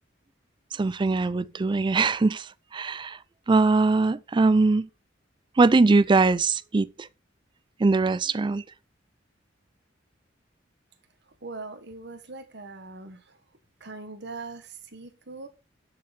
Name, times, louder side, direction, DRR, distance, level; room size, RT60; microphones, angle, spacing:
voice 1, 0.7-3.2 3.5-4.9 5.6-7.1 7.8-8.6, right 3 dB, 25° right, 0.4 m, -22 dB
voice 2, 11.4-13.3 13.8-15.5, right 3 dB, 65° right, 1.5 m, -41 dB
11.5 x 6.8 x 4.2 m
head